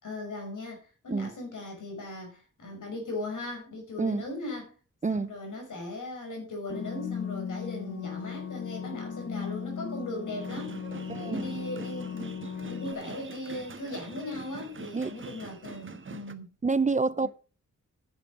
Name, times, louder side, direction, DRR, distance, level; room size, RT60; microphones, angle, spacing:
voice 1, 0.0-4.8 5.1-10.8 11.2-16.5 17.2-17.3, left 2 dB, 80° left, 5.8 m, -38 dB
sound 1, 6.7-12.9, left 7 dB, 50° left, 0.9 m, -37 dB
sound 2, 10.4-16.3, right 5 dB, 40° right, 1.2 m, -44 dB
voice 2, 11.1-11.5 14.9-15.2 16.6-17.3, right 4 dB, 25° right, 0.5 m, -27 dB
10.5 x 7.7 x 5.2 m
cardioid pair, 75°, 31 cm